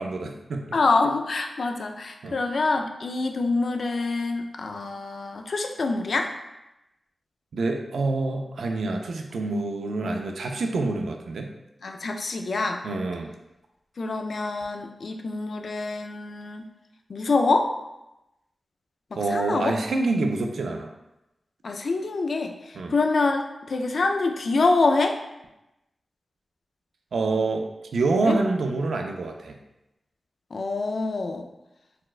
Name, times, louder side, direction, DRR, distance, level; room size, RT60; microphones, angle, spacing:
voice 1, 0.0-0.7 2.2-2.4 7.5-11.5 12.8-13.3 19.2-20.9 22.8-22.9 27.1-27.6 27.9-29.6, right 3 dB, 85° right, 3 dB, 0.3 m, -26 dB
voice 2, 0.7-6.3 11.8-12.8 14.0-16.7 17.1-17.7 19.1-19.8 21.6-23.4 23.7-25.2 28.2-28.4 30.5-31.5, left 3 dB, 65° left, 4 dB, 0.3 m, -25 dB
4.1 x 2.2 x 2.4 m, 0.93 s
cardioid pair, 70°, 0 cm